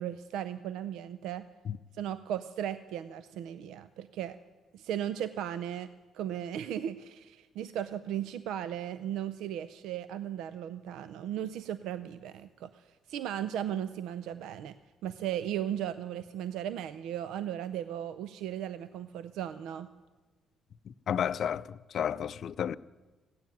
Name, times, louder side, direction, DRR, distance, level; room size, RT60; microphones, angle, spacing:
voice 1, 0.0-1.5 2.0-4.4 4.7-14.8 15.0-19.9, right 10 dB, 90° right, 0.4 m, -36 dB
voice 2, 20.9-22.8, left 8 dB, 60° left, 0.4 m, -32 dB
15.5 x 9.4 x 9.1 m
cardioid pair, 90°, 0 cm